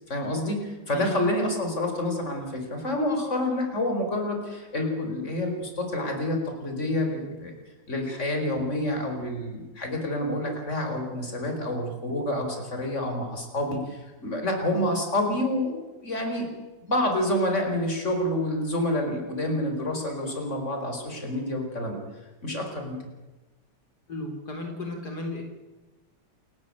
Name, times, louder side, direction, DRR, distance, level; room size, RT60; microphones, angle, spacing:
voice 1, 0.1-7.5 7.9-16.5 16.8-22.0 22.4-23.0, left 1 dB, 45° left, 4 dB, 5.0 m, -28 dB
voice 2, 24.1-25.4, left 2 dB, 70° left, 2 dB, 4.6 m, -34 dB
29.5 x 15.0 x 8.7 m, 1.2 s
omnidirectional pair, 1.8 m